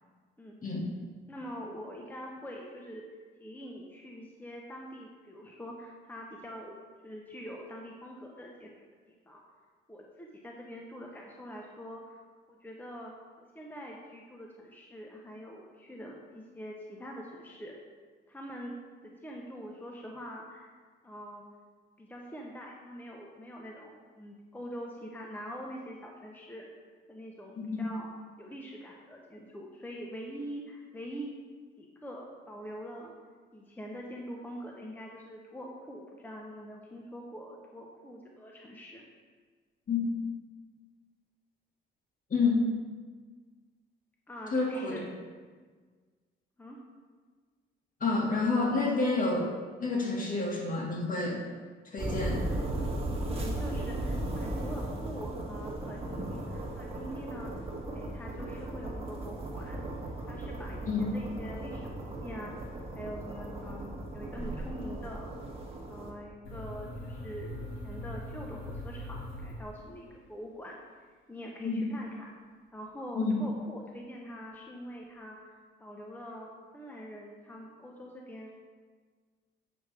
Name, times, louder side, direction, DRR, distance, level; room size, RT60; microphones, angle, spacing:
voice 1, 1.3-3.0 3.4-6.8 7.0-8.7 9.1-9.4 9.9-12.2 12.5-13.1 13.4-17.8 18.3-18.8 19.0-20.7 21.0-21.5 22.0-26.7 27.1-28.1 28.4-31.4 31.8-33.1 33.5-39.0 44.3-45.1 46.6-46.8 53.3-57.5 57.9-59.8 60.3-65.3 65.9-72.3 72.7-78.5, equal, 10° left, -1 dB, 0.9 m, -44 dB
voice 2, 42.3-42.6 44.5-44.9 48.0-49.5 49.8-51.4 51.9-52.4 60.9-61.0 71.6-71.8 73.2-73.4, left 3 dB, 45° left, -2 dB, 1.9 m, -28 dB
sound 1, 52.0-66.1, right 1 dB, 30° right, 1.6 m, -36 dB
sound 2, 66.4-70.2, left 1 dB, 85° left, 2.0 m, -41 dB
8.0 x 6.2 x 3.4 m, 1.5 s
cardioid pair, 90°, 20 cm